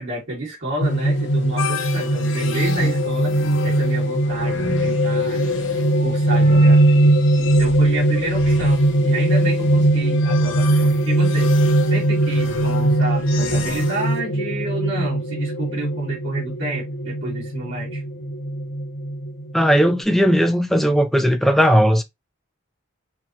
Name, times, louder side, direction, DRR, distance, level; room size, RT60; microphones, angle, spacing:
voice 1, 0.0-5.5 6.0-7.1 7.6-11.5 11.9-18.0, right 1 dB, 65° right, 2.2 m, -30 dB
sound 1, 0.8-20.0, right 1 dB, 60° left, 0.8 m, -20 dB
sound 2, 1.6-14.2, left 4 dB, 80° left, 1.0 m, -34 dB
voice 2, 19.5-22.0, equal, ahead, 0.4 m, -17 dB
4.4 x 2.9 x 2.8 m
head